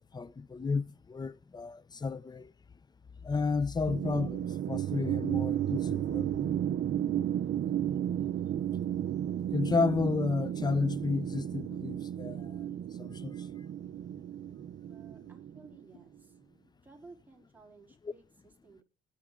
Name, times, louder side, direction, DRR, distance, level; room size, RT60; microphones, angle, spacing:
voice 1, 0.1-2.5 3.2-6.5 9.5-12.5 13.0-13.4, left 4 dB, 20° left, 0.5 m, -32 dB
sound 1, 3.9-16.0, right 10 dB, 60° right, 0.6 m, -33 dB
voice 2, 14.8-16.4 16.8-18.8, right 3 dB, 10° right, 3.8 m, -56 dB
17.5 x 5.9 x 3.7 m
cardioid pair, 90°, 20 cm